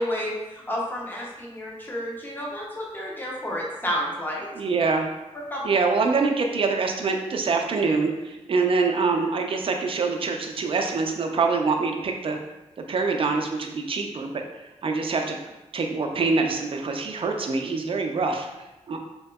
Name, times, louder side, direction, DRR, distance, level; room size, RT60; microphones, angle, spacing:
voice 1, 0.0-4.5 5.3-5.6, equal, 15° left, -3 dB, 0.6 m, -30 dB
voice 2, 4.6-5.1 5.6-12.4 12.9-14.4 14.8-15.4 15.7-18.5 18.9-19.0, right 4 dB, 50° right, 3 dB, 0.4 m, -25 dB
3.5 x 2.7 x 2.2 m, 1.0 s
wide cardioid pair, 135°, 12 cm